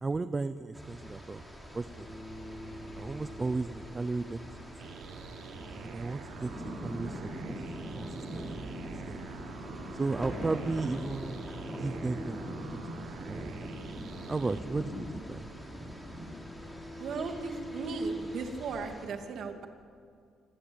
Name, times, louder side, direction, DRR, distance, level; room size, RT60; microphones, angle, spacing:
voice 1, 0.0-1.4 1.7-2.1 2.9-4.6 5.8-6.5 6.8-7.6 8.0-8.5 9.0-9.2 9.9-11.4 11.7-12.5 12.7-13.5 14.3-14.9 15.3-15.5, right 3 dB, 15° right, 11 dB, 0.6 m, -34 dB
sound 1, 0.7-19.1, equal, ahead, 4.3 m, -43 dB
sound 2, 1.9-18.2, equal, 30° left, 7.2 m, -47 dB
sound 3, 4.8-14.6, right 11 dB, 85° right, 1.1 m, -48 dB
voice 2, 17.0-19.7, right 4 dB, 55° right, 4 dB, 2.7 m, -36 dB
26.5 x 24.5 x 9.0 m, 2.3 s
cardioid pair, 170°, 0 cm